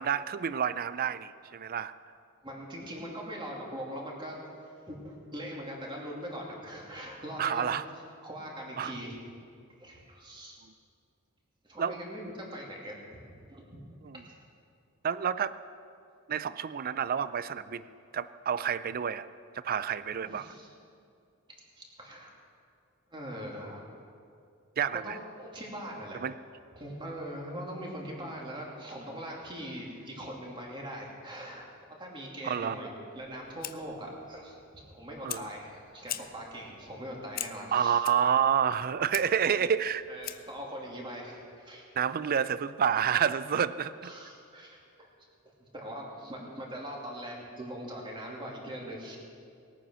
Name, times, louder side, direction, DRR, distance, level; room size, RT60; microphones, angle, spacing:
voice 1, 0.0-1.9 7.4-7.8 8.8-8.9 11.8-12.0 14.1-14.2 15.0-15.6 16.3-17.9 18.1-19.3 19.5-20.5 24.8-25.2 26.2-26.3 32.4-32.8 35.2-35.5 37.7-40.0 42.0-44.1, right 8 dB, 40° right, 15 dB, 0.4 m, -29 dB
voice 2, 2.4-4.4 4.9-7.8 8.2-9.2 9.8-10.6 11.6-12.9 13.3-13.8 14.1-14.2 20.2-20.7 21.8-22.3 23.1-23.8 24.9-26.2 26.8-31.7 32.0-32.9 33.2-38.0 39.5-39.6 40.1-41.9 44.0-45.1 45.7-49.2, equal, 20° right, -2 dB, 2.6 m, -41 dB
Fire, 33.2-40.6, left 12 dB, 40° left, 0.5 m, -44 dB
19.5 x 9.2 x 6.2 m, 2.4 s
head